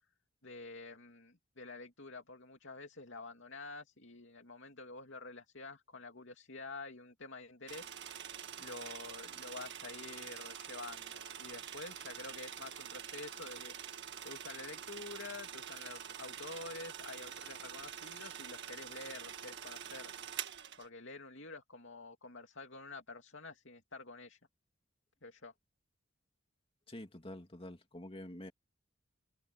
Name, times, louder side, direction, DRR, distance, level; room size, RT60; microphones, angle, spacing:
voice 1, 0.4-8.3 8.6-20.1 20.8-24.4 25.2-25.5, left 3 dB, 60° left, 2.8 m, -49 dB
sound 1, 7.7-20.9, right 9 dB, 55° right, 1.8 m, -46 dB
voice 2, 26.9-28.5, left 1 dB, 25° left, 2.4 m, -47 dB
head